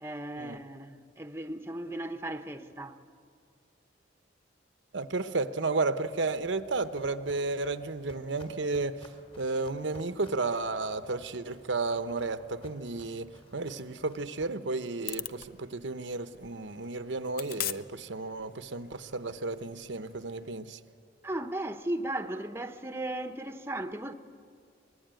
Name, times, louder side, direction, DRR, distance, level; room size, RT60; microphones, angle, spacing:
voice 1, 0.0-3.0 21.2-24.1, right 1 dB, 15° right, 0.9 m, -36 dB
voice 2, 4.9-9.1 9.4-20.8, right 3 dB, 75° right, 0.9 m, -33 dB
Walk footsteps, 6.0-14.5, left 1 dB, 30° left, 2.7 m, -56 dB
sound 1, 15.0-20.6, left 12 dB, 50° left, 0.6 m, -43 dB
24.5 x 20.5 x 9.1 m
head